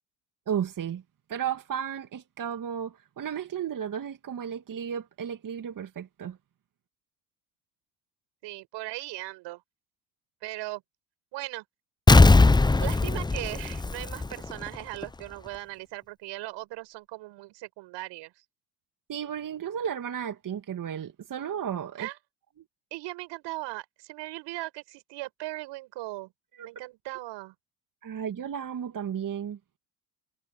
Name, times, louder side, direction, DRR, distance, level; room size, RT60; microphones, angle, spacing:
voice 1, 0.5-1.0 1.3-6.4 19.1-22.1 26.6-26.7 28.0-29.6, right 8 dB, 45° right, 2.2 m, -33 dB
voice 2, 8.4-9.6 10.4-10.8 11.3-11.6 12.8-18.3 22.0-22.2 22.9-26.3 26.6-27.5, right 19 dB, 70° right, 6.4 m, -38 dB
Explosion, 12.1-14.7 15.0-15.1, left 3 dB, 10° left, 0.7 m, -19 dB
hypercardioid pair, 60°, 44 cm